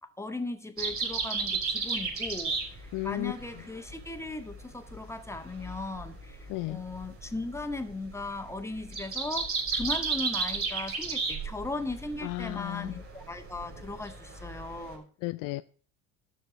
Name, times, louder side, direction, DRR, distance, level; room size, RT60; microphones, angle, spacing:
voice 1, 0.0-15.1, left 2 dB, 5° left, 1.7 m, -38 dB
sound 1, 0.8-15.0, right 4 dB, 30° right, 5.5 m, -34 dB
voice 2, 2.9-3.3 6.5-6.8 12.2-13.0 15.2-15.6, left 20 dB, 50° left, 0.5 m, -33 dB
12.5 x 4.6 x 8.4 m
figure-of-eight pair, 60°, 42 cm